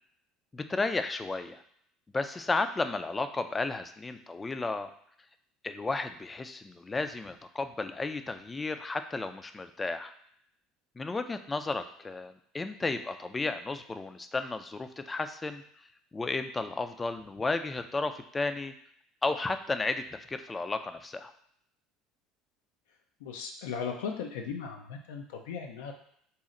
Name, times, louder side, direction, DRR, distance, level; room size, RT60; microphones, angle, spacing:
voice 1, 0.5-1.6 2.1-4.9 5.6-10.1 11.0-15.6 16.1-18.7 19.2-21.3, left 3 dB, 20° left, 9 dB, 0.3 m, -33 dB
voice 2, 23.2-25.9, left 6 dB, 90° left, 3 dB, 0.4 m, -37 dB
4.1 x 2.1 x 3.7 m, 0.67 s
supercardioid pair, 95°, 0 cm